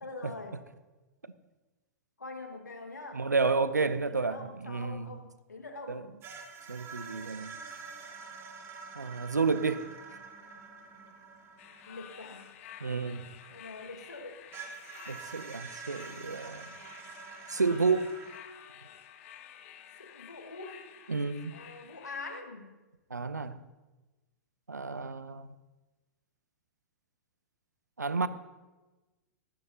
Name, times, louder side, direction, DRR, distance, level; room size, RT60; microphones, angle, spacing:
voice 1, 0.0-0.6 2.2-3.3 4.1-6.1 11.9-12.5 13.5-14.4 20.0-20.8 21.5-22.7, left 3 dB, 80° left, 1.9 m, -44 dB
voice 2, 3.1-5.2 5.9-6.0 6.7-7.6 9.0-9.9 12.8-13.2 15.1-16.7 17.5-18.1 21.1-21.5 23.1-23.6 24.7-25.5 28.0-28.3, right 4 dB, 85° right, 0.7 m, -30 dB
sound 1, 6.2-13.9 14.5-18.4, right 5 dB, 25° right, 2.3 m, -47 dB
sound 2, 11.6-22.4, left 10 dB, 50° left, 1.0 m, -51 dB
18.5 x 15.0 x 2.8 m
figure-of-eight pair, 100°, 9 cm